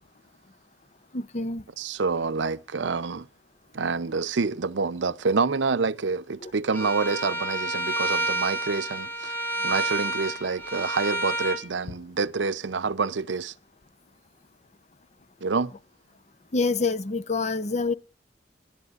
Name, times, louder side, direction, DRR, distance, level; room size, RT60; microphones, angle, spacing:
voice 1, 1.1-1.6 6.4-6.5 16.5-17.9, left 3 dB, 40° left, 0.7 m, -26 dB
voice 2, 1.8-3.3 3.7-9.3 9.6-13.5 15.4-15.7, right 4 dB, 80° right, 0.6 m, -27 dB
Bowed string instrument, 6.7-11.6, right 2 dB, 10° left, 2.9 m, -29 dB
27.5 x 11.5 x 2.5 m
head